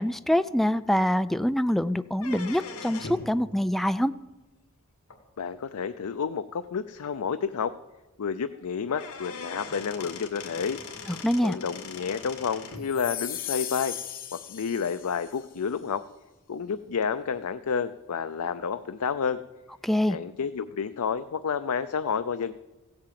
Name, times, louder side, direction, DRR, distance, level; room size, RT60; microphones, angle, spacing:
voice 1, 0.0-4.1 11.1-11.6 19.8-20.2, equal, ahead, 12 dB, 0.4 m, -25 dB
sound 1, 2.1-3.3 5.1-5.2 6.1-6.2 6.6-6.7 7.0-7.1 8.5-8.6 8.9-12.9, left 4 dB, 70° left, 2.2 m, -41 dB
voice 2, 5.4-7.7 8.2-10.8 11.4-14.0 14.3-16.0 16.5-19.4 20.1-22.5, left 6 dB, 90° left, 10 dB, 0.5 m, -30 dB
sound 2, 12.8-15.4, left 11 dB, 40° left, 1.3 m, -36 dB
16.0 x 8.7 x 7.5 m, 1.1 s
head